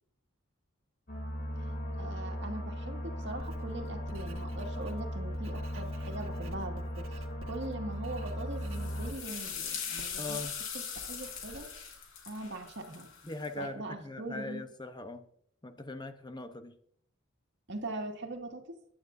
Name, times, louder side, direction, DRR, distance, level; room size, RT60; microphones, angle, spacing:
sound 1, 1.1-9.1, equal, 45° left, 2.6 m, -37 dB
voice 1, 1.6-10.4 11.0-11.7 12.3-13.1 13.6-14.6 17.7-18.8, right 2 dB, 60° right, 3 dB, 2.1 m, -41 dB
Writing, 3.3-12.7, right 2 dB, 85° right, 1.7 m, -53 dB
sound 2, 8.6-13.5, left 7 dB, 75° left, 3.6 m, -40 dB
voice 2, 10.2-10.5 13.2-15.2 15.6-16.7, left 2 dB, 20° left, 8 dB, 0.9 m, -41 dB
23.0 x 11.5 x 2.7 m, 0.66 s
head